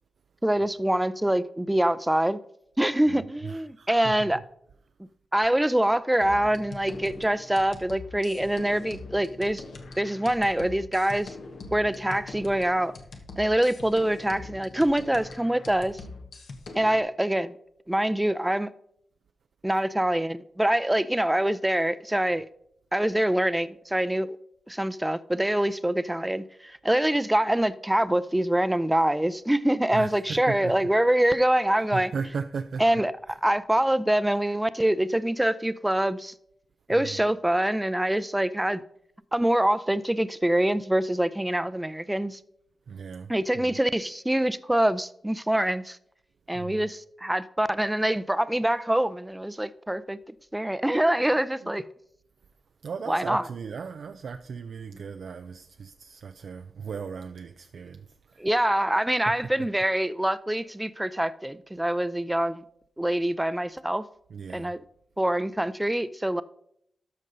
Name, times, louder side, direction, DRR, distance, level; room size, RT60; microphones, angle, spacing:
voice 1, 0.4-2.4 2.8-4.4 5.3-9.6 10.0-11.3 11.7-12.9 13.4-16.0 16.7-17.6 17.9-18.7 19.6-22.5 22.9-24.3 24.7-32.1 32.8-33.1 33.4-36.3 36.9-38.8 39.3-42.4 43.3-46.0 46.5-50.2 50.5-51.8 53.1-53.4 58.4-62.6 63.0-64.0 64.5-64.8 65.2-66.4, right 1 dB, 10° right, 0.5 m, -25 dB
voice 2, 3.1-4.4 29.9-30.9 31.8-32.8 33.3-33.4 36.9-37.2 42.9-43.7 46.5-46.9 51.6-51.7 52.8-58.5 59.3-59.4 64.3-64.7, right 5 dB, 75° right, 0.4 m, -37 dB
sound 1, 6.2-17.0, left 3 dB, 80° left, 1.3 m, -43 dB
13.0 x 5.3 x 4.0 m
cardioid pair, 50°, 0 cm